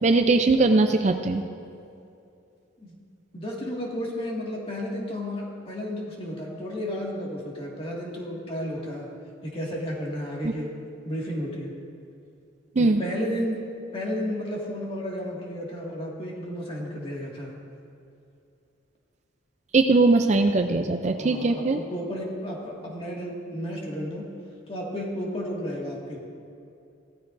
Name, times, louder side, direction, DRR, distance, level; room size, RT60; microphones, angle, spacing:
voice 1, 0.0-1.4 10.4-10.5 12.8-13.0 19.7-21.8, right 3 dB, 35° right, 6 dB, 0.4 m, -20 dB
voice 2, 3.3-9.1 9.4-10.7 11.1-11.7 12.8-13.6 13.9-17.6 21.2-24.2 24.7-26.2, equal, 30° left, -3 dB, 2.0 m, -32 dB
16.5 x 13.5 x 2.6 m, 2.6 s
head